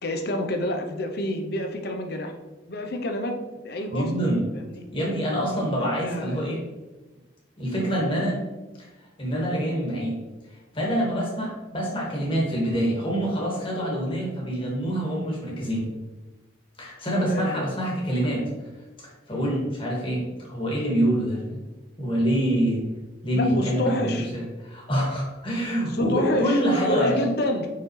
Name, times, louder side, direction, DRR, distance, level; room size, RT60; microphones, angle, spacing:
voice 1, 0.0-2.3 2.7-4.1 4.5-4.8 5.5-6.4 17.3-17.7 23.3-24.3 25.9-27.7, left 1 dB, 60° left, 5 dB, 0.8 m, -29 dB
voice 2, 3.9-4.4 4.9-6.6 7.6-8.4 8.8-8.9 9.2-10.2 10.7-15.9 16.8-18.5 19.0-21.6 22.0-22.8 23.2-27.2, equal, 30° left, -4 dB, 2.1 m, -26 dB
5.7 x 5.6 x 3.2 m, 1.2 s
head